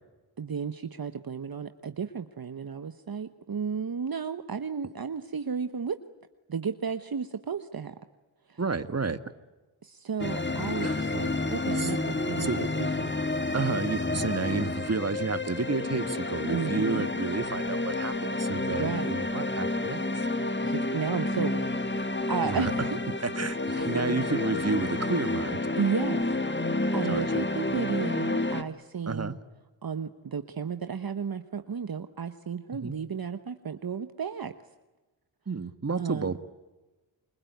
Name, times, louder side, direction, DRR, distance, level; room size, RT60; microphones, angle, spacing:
voice 1, 0.4-6.0 6.5-7.9 8.5-8.6 9.8-12.7 13.0-13.1 16.5-17.1 18.8-19.1 20.6-21.6 22.0-23.0 23.7-24.0 25.8-26.3 26.9-29.3 29.8-34.5 36.0-36.3, right 6 dB, 50° right, 9 dB, 1.2 m, -33 dB
voice 2, 8.6-9.2 10.8-11.1 11.7-11.9 12.4-12.6 13.5-20.0 22.4-22.9 23.2-25.6 27.0-27.2 29.1-29.4 32.7-33.0 35.5-36.4, right 4 dB, 35° right, 12 dB, 1.7 m, -31 dB
sound 1, 10.2-28.6, left 2 dB, 25° left, 1.8 m, -30 dB
29.0 x 22.0 x 9.4 m, 1.2 s
cardioid pair, 55°, 46 cm